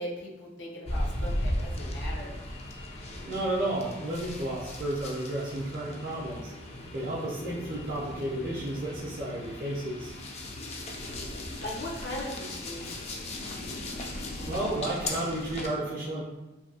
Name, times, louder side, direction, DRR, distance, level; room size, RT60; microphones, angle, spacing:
voice 1, 0.0-2.3 11.6-13.0, left 1 dB, 65° left, -2 dB, 0.7 m, -38 dB
sound 1, 0.9-15.7, left 1 dB, 35° left, 0.4 m, -37 dB
voice 2, 3.3-6.5 6.9-10.1 14.5-16.2, right 1 dB, 50° right, -7 dB, 0.5 m, -32 dB
2.7 x 2.6 x 2.7 m, 1.0 s
head